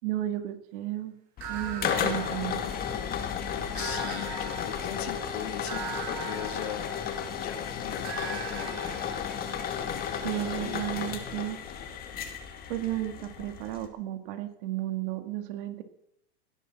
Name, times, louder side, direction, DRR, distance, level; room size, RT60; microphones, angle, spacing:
voice 1, 0.0-1.2 1.5-2.7 10.2-11.6 12.7-15.8, right 14 dB, 50° right, 8 dB, 2.3 m, -33 dB
sound 1, 1.4-13.9, left 8 dB, 25° left, 2.2 m, -33 dB
sound 2, 1.4-3.1 3.7-7.4 8.0-11.8, right 8 dB, 70° right, 7.9 m, -42 dB
voice 2, 3.8-8.8 10.1-10.9, left 11 dB, 70° left, 6 dB, 2.3 m, -40 dB
17.5 x 10.5 x 6.2 m, 0.75 s
supercardioid pair, 140°, 33 cm